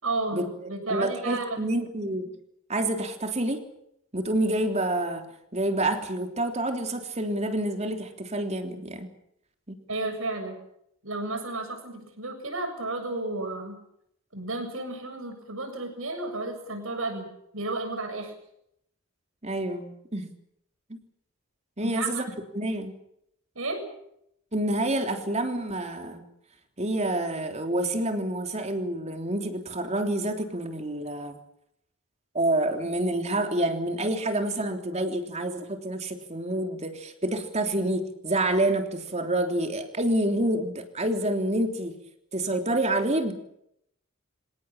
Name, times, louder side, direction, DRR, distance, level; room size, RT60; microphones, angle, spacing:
voice 1, 0.0-1.6 9.9-10.6 11.0-13.8 14.3-17.3 17.5-18.3 21.8-22.2 23.6-23.8, right 2 dB, 70° right, 6 dB, 7.5 m, -32 dB
voice 2, 0.9-2.3 2.7-3.6 4.1-5.3 5.5-9.1 9.7-9.8 19.4-20.3 20.9-21.0 21.8-22.2 22.5-22.9 24.5-26.2 26.8-31.4 32.3-41.9 42.3-43.3, right 1 dB, 30° right, 6 dB, 3.3 m, -28 dB
26.5 x 18.0 x 8.9 m, 0.75 s
head